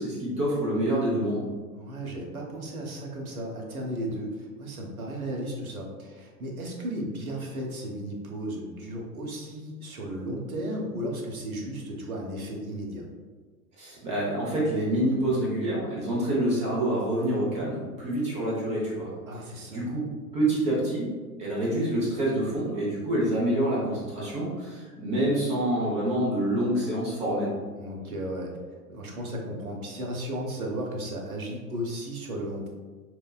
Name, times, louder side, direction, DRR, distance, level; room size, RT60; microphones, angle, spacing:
voice 1, 0.0-1.4 13.8-19.1 19.7-21.1 21.4-27.5, right 1 dB, 15° right, -5 dB, 0.6 m, -27 dB
voice 2, 1.7-13.1 19.3-19.9 27.8-28.5 28.9-32.7, right 1 dB, 65° right, 0 dB, 0.8 m, -35 dB
4.6 x 2.2 x 2.3 m, 1.4 s
figure-of-eight pair, 100°, 46 cm